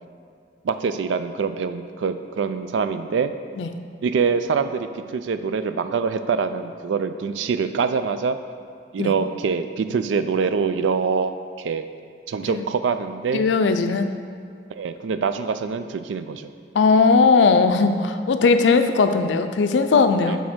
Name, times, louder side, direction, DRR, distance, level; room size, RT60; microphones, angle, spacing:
voice 1, 0.6-3.3 4.0-8.4 8.9-11.9 12.3-13.5 14.7-16.5 20.2-20.4, right 5 dB, 75° right, 10 dB, 0.3 m, -24 dB
voice 2, 13.3-14.1 16.7-20.4, left 4 dB, 70° left, 8 dB, 0.4 m, -18 dB
6.3 x 3.5 x 6.0 m, 2.2 s
head